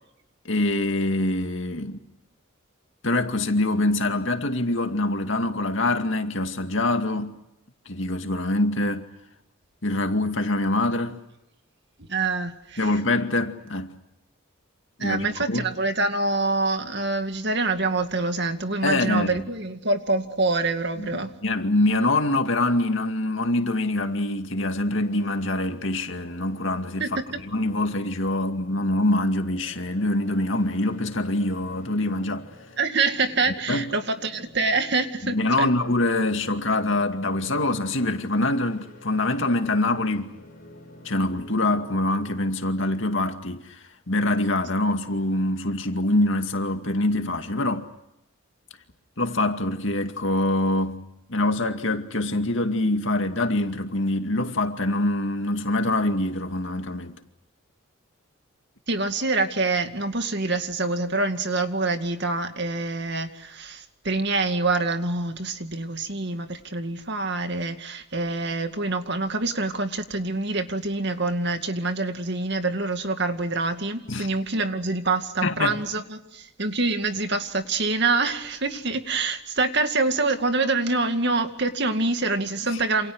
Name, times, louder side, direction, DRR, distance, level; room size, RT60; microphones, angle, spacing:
voice 1, 0.4-2.0 3.0-7.4 7.9-9.1 9.8-11.2 12.8-13.9 15.0-15.7 18.8-19.4 21.0-21.1 21.4-27.2 27.5-32.5 33.7-33.9 35.2-40.3 41.0-47.9 49.2-51.0 51.3-57.2 74.1-74.3 75.4-75.8 82.7-82.8, left 2 dB, 60° left, 2.3 m, -24 dB
voice 2, 12.0-12.9 15.0-21.3 27.0-27.2 32.8-35.7 58.9-83.1, right 3 dB, 55° right, 2.2 m, -26 dB
sound 1, 25.0-42.5, left 1 dB, 40° left, 7.1 m, -49 dB
28.0 x 28.0 x 6.4 m
head